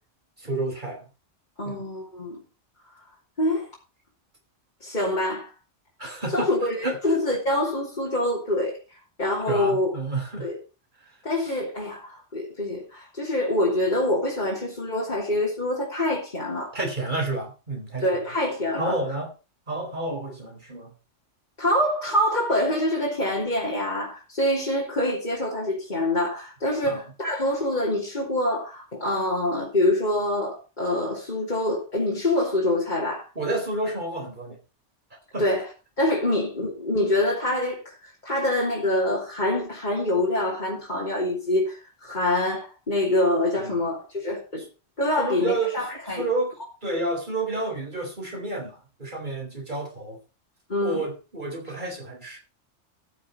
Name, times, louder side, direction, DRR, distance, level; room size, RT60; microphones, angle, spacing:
voice 1, 0.4-1.0 1.6-1.8 6.0-6.5 6.8-7.0 9.5-10.5 16.7-18.1 18.8-19.3 19.7-20.9 26.8-27.0 33.4-34.6 35.3-35.5 36.3-36.4 43.6-43.8 45.2-45.8 46.2-46.5 46.8-50.2 50.8-52.4, right 2 dB, 40° right, 4.2 m, -30 dB
voice 2, 1.6-2.4 2.9-3.0 3.4-3.7 4.8-5.5 6.3-8.8 9.2-9.9 10.4-10.6 11.2-16.7 18.0-19.0 21.6-33.3 35.4-35.7 36.0-44.6 45.0-46.3 50.7-51.0, left 1 dB, 40° left, 3.3 m, -25 dB
14.5 x 6.8 x 5.3 m
omnidirectional pair, 1.2 m